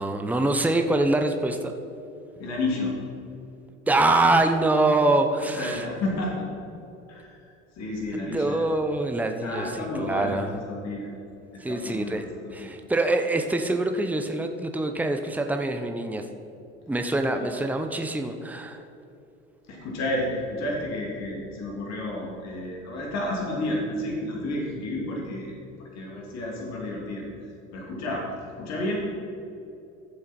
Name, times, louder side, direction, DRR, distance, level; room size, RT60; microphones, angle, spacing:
voice 1, 0.0-1.7 3.9-5.9 8.1-10.5 11.6-12.2 12.5-16.2 16.9-18.8, right 2 dB, 5° right, 6 dB, 0.9 m, -24 dB
voice 2, 2.4-3.0 5.6-6.5 7.1-7.4 7.7-8.6 9.4-11.1 11.5-12.7 17.2-17.5 19.7-25.5 25.8-27.3 27.7-28.2 28.6-29.0, left 1 dB, 50° left, -2 dB, 3.0 m, -31 dB
14.0 x 7.5 x 4.5 m, 2.7 s
hypercardioid pair, 70°, 34 cm